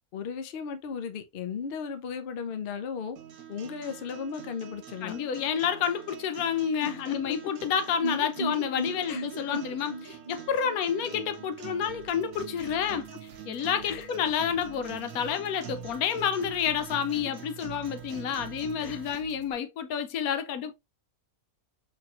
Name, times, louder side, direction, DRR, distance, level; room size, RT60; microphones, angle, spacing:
voice 1, 0.1-3.2 3.5-5.2 6.8-7.5 9.1-9.6 12.6-13.0 13.9-14.1 18.8-19.0, left 6 dB, 60° left, 0.6 m, -36 dB
sound 1, 3.2-19.2, right 10 dB, 75° right, 1.3 m, -45 dB
voice 2, 5.0-13.1 13.5-20.7, left 8 dB, 85° left, 1.1 m, -29 dB
sound 2, 8.0-11.9 12.1-12.2 12.5-12.6, right 2 dB, 30° right, 0.7 m, -37 dB
sound 3, 11.9-19.5, right 3 dB, 60° right, 1.0 m, -52 dB
4.2 x 3.2 x 2.4 m
omnidirectional pair, 1.5 m